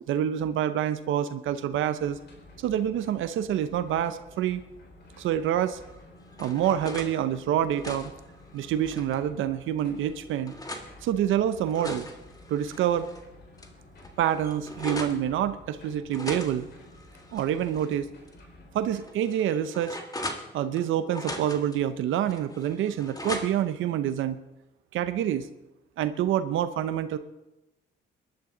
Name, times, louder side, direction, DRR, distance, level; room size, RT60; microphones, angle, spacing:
voice 1, 0.1-2.2 2.6-4.6 5.2-5.8 6.4-8.1 8.5-10.5 11.0-12.1 12.5-13.1 14.2-16.6 17.3-18.1 18.7-20.0 20.5-24.4 24.9-25.5 26.0-27.2, right 10 dB, 80° right, 12 dB, 0.7 m, -27 dB
sound 1, 2.0-19.1, left 1 dB, 55° left, 4.5 m, -52 dB
sound 2, 5.8-7.1 7.6-9.2 9.8-10.9 11.5-13.2 13.6-13.7 14.0-15.2 16.1-17.9 18.3-18.4 19.0-20.8 21.1-21.8 22.3-23.8, left 1 dB, 20° left, 1.7 m, -39 dB
21.5 x 11.5 x 3.9 m, 0.98 s
cardioid pair, 90°, 20 cm